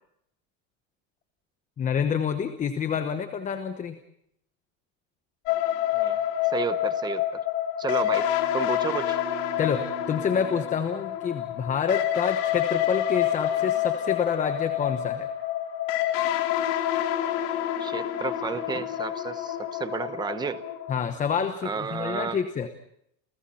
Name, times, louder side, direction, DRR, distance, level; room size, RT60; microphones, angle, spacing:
voice 1, 1.8-4.0 9.6-15.3 20.9-22.7, left 7 dB, 20° left, 9 dB, 1.0 m, -28 dB
sound 1, 5.5-21.0, left 12 dB, 70° left, 4.4 m, -28 dB
voice 2, 6.5-7.4 7.8-8.3 8.5-9.2 17.8-20.6 21.6-22.4, right 5 dB, 10° right, 11 dB, 0.9 m, -32 dB
Bowed string instrument, 8.0-11.6, right 9 dB, 50° right, 1.9 m, -44 dB
30.0 x 29.5 x 4.3 m, 0.74 s
cardioid pair, 165°, 39 cm